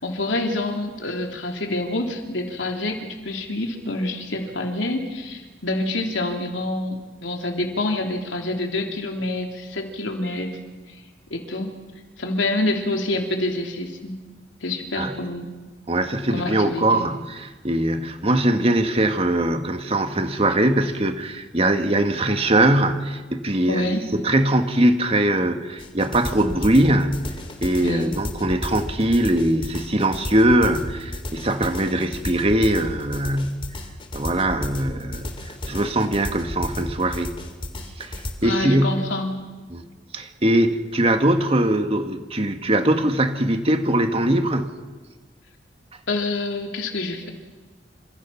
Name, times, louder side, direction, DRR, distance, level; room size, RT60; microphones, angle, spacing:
voice 1, 0.0-10.6 11.3-11.7 12.2-14.2 14.6-15.5 16.3-17.1 23.7-24.0 27.8-28.1 38.4-39.4 46.1-47.3, left 2 dB, 90° left, 3 dB, 3.5 m, -27 dB
voice 2, 15.9-27.4 27.6-33.7 34.1-35.3 35.7-37.3 38.0-38.1 38.4-39.0 39.7-39.8 40.1-44.8, right 1 dB, 30° right, 7 dB, 1.8 m, -21 dB
sound 1, 25.8-38.3, left 1 dB, 30° left, 3.0 m, -33 dB
28.0 x 27.0 x 5.9 m, 1.3 s
head